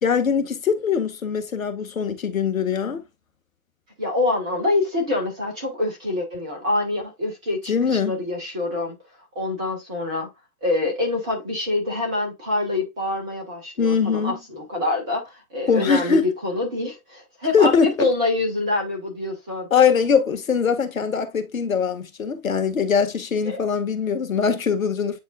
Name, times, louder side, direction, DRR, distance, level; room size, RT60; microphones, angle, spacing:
voice 1, 0.0-3.0 7.7-8.2 13.8-14.4 15.7-16.3 17.5-18.1 19.7-25.2, left 6 dB, 65° left, 2.0 m, -22 dB
voice 2, 4.0-9.0 9.4-10.3 10.6-19.7 23.4-23.6, left 2 dB, 5° right, 0.4 m, -26 dB
9.6 x 4.3 x 2.4 m
figure-of-eight pair, 130°, 44 cm